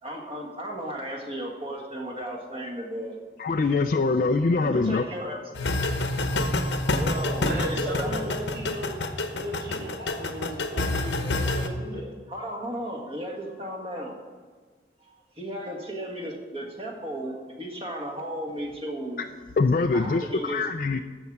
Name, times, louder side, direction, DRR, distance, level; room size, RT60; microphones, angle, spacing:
voice 1, 0.0-3.2 4.6-5.4 6.3-6.5 6.8-8.2 10.7-11.0 12.3-14.2 15.0-19.3 19.9-21.0, equal, 30° right, 1 dB, 1.6 m, -35 dB
voice 2, 3.4-5.1 19.6-21.0, left 3 dB, 45° left, 6 dB, 0.4 m, -23 dB
sound 1, 5.5-11.7, left 2 dB, 75° left, 0.9 m, -27 dB
voice 3, 7.4-9.0 9.3-12.1, equal, 60° right, -2 dB, 3.4 m, -35 dB
13.5 x 4.7 x 8.5 m, 1.5 s
head